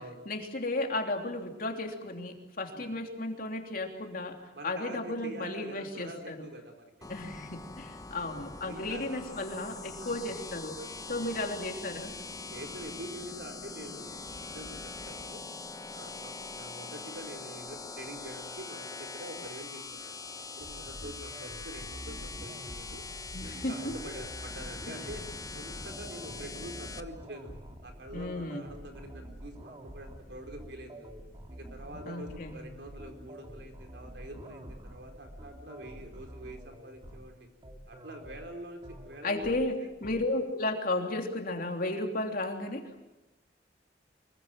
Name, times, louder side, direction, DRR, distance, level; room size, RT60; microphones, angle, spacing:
voice 1, 0.2-4.4 4.6-6.5 7.1-10.8 11.1-12.1 23.3-23.9 28.1-28.6 32.1-32.7 39.2-43.0, left 2 dB, 55° left, 3 dB, 3.2 m, -34 dB
voice 2, 4.5-7.1 8.7-9.1 10.0-10.3 11.1-11.3 12.5-15.4 15.9-23.0 23.4-25.2 25.5-27.5 27.8-31.1 31.5-37.5 37.9-39.9, right 1 dB, 70° right, 5 dB, 4.4 m, -46 dB
sound 1, 7.0-27.0, left 3 dB, 20° left, 1.1 m, -43 dB
sound 2, 20.6-40.2, equal, 30° right, 2.6 m, -47 dB
25.5 x 22.0 x 7.6 m, 1.0 s
head